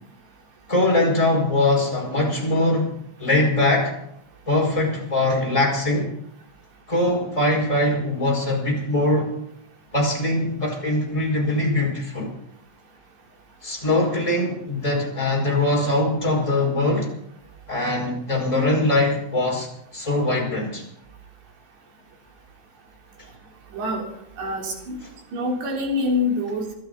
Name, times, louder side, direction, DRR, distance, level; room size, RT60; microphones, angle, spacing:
voice 1, 0.7-2.9 3.2-3.9 4.5-6.1 6.9-9.3 9.9-12.3 13.6-17.1 17.7-19.7 19.9-20.8, left 2 dB, 5° left, -2 dB, 5.0 m, -22 dB
voice 2, 23.7-24.0 24.4-25.0 25.3-26.7, left 2 dB, 65° right, -1 dB, 5.7 m, -25 dB
26.0 x 12.5 x 4.0 m, 0.76 s
omnidirectional pair, 5.3 m